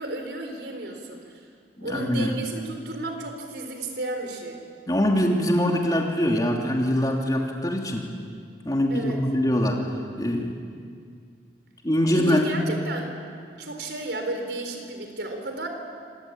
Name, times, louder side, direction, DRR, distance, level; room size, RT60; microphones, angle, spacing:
voice 1, 0.0-1.4 1.8-4.6 8.9-9.2 12.1-13.1 13.5-15.7, right 2 dB, 85° right, 4 dB, 4.1 m, -33 dB
voice 2, 1.8-2.3 4.9-8.1 8.6-9.8 10.2-10.5 11.8-12.5, equal, 20° left, 1 dB, 3.0 m, -23 dB
25.5 x 19.5 x 8.8 m, 2.2 s
head